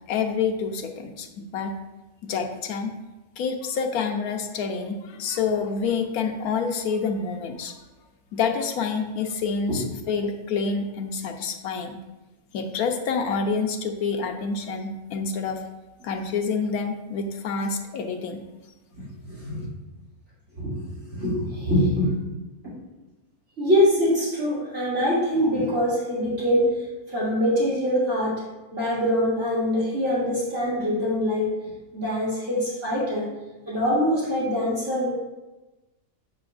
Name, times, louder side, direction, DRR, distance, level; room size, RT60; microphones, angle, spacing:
voice 1, 0.1-1.8 2.2-2.9 3.4-7.7 8.3-12.0 12.5-15.6 16.0-18.4, left 5 dB, 90° left, 5 dB, 1.2 m, -27 dB
voice 2, 19.0-19.7 20.6-22.1 22.6-22.7 23.6-26.7 27.1-28.4 28.7-31.5 31.9-33.3 33.7-35.1, equal, 55° right, -10 dB, 2.9 m, -24 dB
7.5 x 7.0 x 2.4 m, 1.1 s
omnidirectional pair, 1.5 m